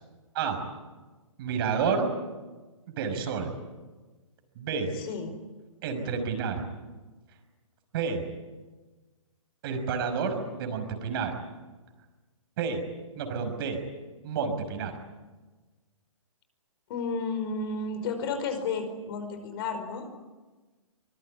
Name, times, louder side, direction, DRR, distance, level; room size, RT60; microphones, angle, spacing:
voice 1, 1.4-2.1 2.9-3.5 4.6-4.9 5.8-6.6 7.9-8.2 9.6-11.4 12.6-12.8 13.2-13.8 14.2-14.9, right 5 dB, 45° right, 6 dB, 5.6 m, -29 dB
voice 2, 5.0-5.3 16.9-20.1, left 4 dB, 45° left, 8 dB, 4.9 m, -32 dB
24.5 x 21.5 x 9.9 m, 1.3 s
hypercardioid pair, 135°, 18 cm